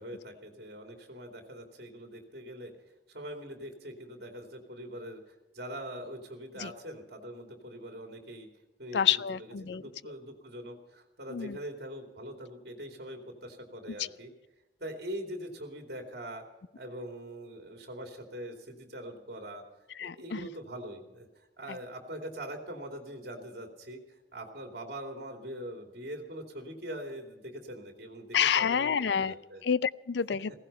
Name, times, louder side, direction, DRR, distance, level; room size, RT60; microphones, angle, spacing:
voice 1, 0.0-2.7 3.1-8.5 8.8-9.0 9.7-14.3 14.8-16.4 16.7-19.6 20.0-24.0 24.3-29.6, right 1 dB, 55° right, 3 dB, 2.6 m, -42 dB
voice 2, 8.9-10.1 11.3-11.6 14.0-14.1 20.0-20.5 21.7-21.8 28.3-29.3 29.6-30.5, left 8 dB, 75° left, 18 dB, 0.4 m, -29 dB
16.5 x 15.5 x 5.6 m, 1.0 s
head